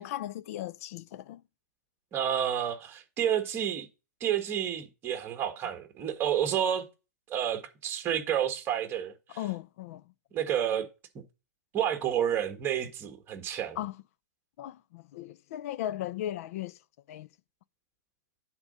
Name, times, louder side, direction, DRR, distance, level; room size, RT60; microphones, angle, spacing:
voice 1, 0.0-1.4 9.4-10.0 13.8-14.0 14.6-16.8 17.1-17.3, left 13 dB, 55° left, 0.5 m, -37 dB
voice 2, 2.1-3.9 4.2-6.9 7.3-9.4 10.3-10.9 11.7-13.8, right 9 dB, 25° right, 1.5 m, -30 dB
9.6 x 4.0 x 5.4 m
hypercardioid pair, 145°, 9 cm